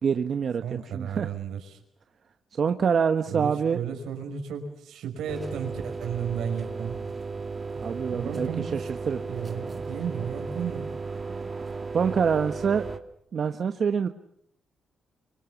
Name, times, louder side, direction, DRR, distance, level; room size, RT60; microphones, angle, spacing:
voice 1, 0.0-0.6 0.9-1.3 2.6-3.8 7.8-9.2 11.9-12.9 13.3-14.1, right 6 dB, 55° right, 7 dB, 1.2 m, -25 dB
voice 2, 0.6-1.8 3.3-7.0 8.1-8.9 9.3-10.9, right 7 dB, 90° right, 5 dB, 5.5 m, -33 dB
sound 1, 5.3-13.0, right 4 dB, 30° right, 2.3 m, -35 dB
26.0 x 25.0 x 7.2 m, 0.71 s
cardioid pair, 105°, 0 cm